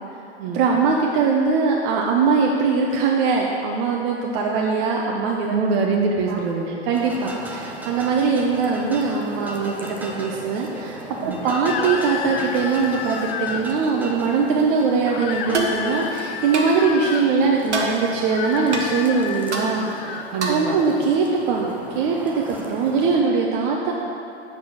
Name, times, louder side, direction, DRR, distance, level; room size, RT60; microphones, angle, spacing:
voice 1, 0.5-5.5 6.3-6.4 6.9-23.9, right 4 dB, 45° right, -1 dB, 0.8 m, -21 dB
voice 2, 5.5-6.7 11.2-11.4 20.3-20.8, right 4 dB, 60° right, 1 dB, 1.3 m, -23 dB
sound 1, 6.9-23.2, right 1 dB, 5° right, 0.5 m, -37 dB
sound 2, 11.4-13.7 15.1-17.3 18.2-20.3, left 8 dB, 50° left, 0.5 m, -31 dB
sound 3, 15.5-15.8 16.5-16.7 17.7-17.9 18.7-18.8 19.5-19.7 20.4-20.7, right 3 dB, 90° right, 1.2 m, -24 dB
7.5 x 4.4 x 6.2 m, 2.8 s
hypercardioid pair, 115°, 34 cm